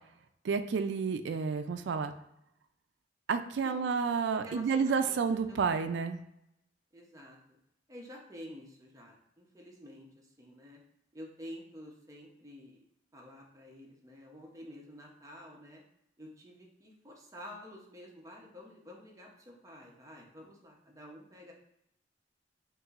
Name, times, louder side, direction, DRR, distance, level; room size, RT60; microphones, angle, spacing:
voice 1, 0.4-2.1 3.3-6.2, right 5 dB, 70° right, 8 dB, 0.3 m, -30 dB
voice 2, 3.6-5.2 5.5-5.6 6.9-7.4 7.9-10.8 11.1-12.8 13.1-15.8 16.2-21.5, equal, 20° right, -1 dB, 0.7 m, -49 dB
6.0 x 2.6 x 2.4 m, 0.79 s
head